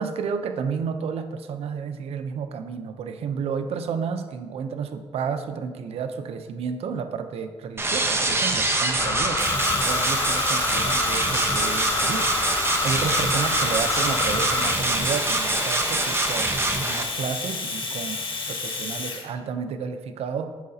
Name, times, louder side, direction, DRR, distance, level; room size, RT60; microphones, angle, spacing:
voice 1, 0.0-20.5, right 6 dB, 85° right, 9 dB, 0.6 m, -31 dB
sound 1, 7.8-17.0, right 2 dB, 25° right, 0.9 m, -25 dB
sound 2, 9.0-14.8, left 4 dB, 30° left, 0.5 m, -28 dB
Domestic sounds home sounds, 9.4-19.3, left 4 dB, 55° left, 1.1 m, -31 dB
12.0 x 4.9 x 2.8 m, 1.4 s
cardioid pair, 85°, 10 cm